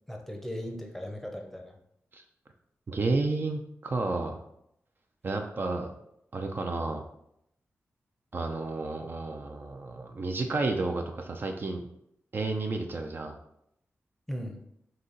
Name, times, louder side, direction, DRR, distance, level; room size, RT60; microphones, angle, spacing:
voice 1, 0.1-1.7 14.3-14.6, equal, 5° left, 3 dB, 0.7 m, -37 dB
voice 2, 2.9-4.4 5.2-5.9 6.3-7.0 8.3-11.8 12.3-13.3, right 3 dB, 45° right, 4 dB, 0.4 m, -31 dB
4.1 x 2.8 x 3.9 m, 0.76 s
wide cardioid pair, 90°, 5 cm